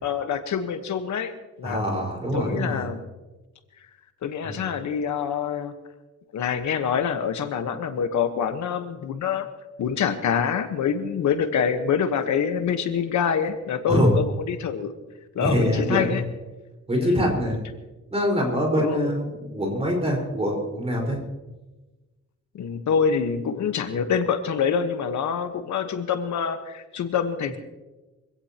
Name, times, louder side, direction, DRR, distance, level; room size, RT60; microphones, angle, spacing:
voice 1, 0.0-1.8 2.3-3.0 4.2-5.7 6.3-9.5 9.8-14.9 15.3-16.2 16.9-17.2 18.8-19.1 22.5-27.6, left 7 dB, 65° left, 8 dB, 1.3 m, -26 dB
voice 2, 1.6-2.8 4.4-4.6 13.9-14.1 15.4-16.2 16.9-17.6 18.1-21.2, equal, 20° right, 0 dB, 4.8 m, -24 dB
25.0 x 17.0 x 2.9 m, 1.2 s
cardioid pair, 155°, 31 cm